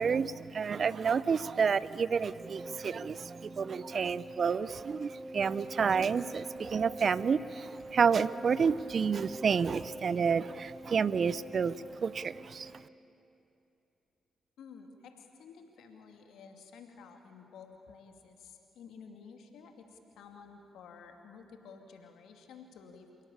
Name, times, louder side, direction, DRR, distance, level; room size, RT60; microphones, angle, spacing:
voice 1, 0.0-11.7 12.0-12.7, right 6 dB, 55° right, 18 dB, 0.6 m, -30 dB
Organ, 2.4-13.1, right 1 dB, 20° right, 1.0 m, -45 dB
voice 2, 14.6-23.1, left 5 dB, 75° left, 4 dB, 2.5 m, -52 dB
27.5 x 17.5 x 8.6 m, 2.9 s
supercardioid pair, 45°, 0 cm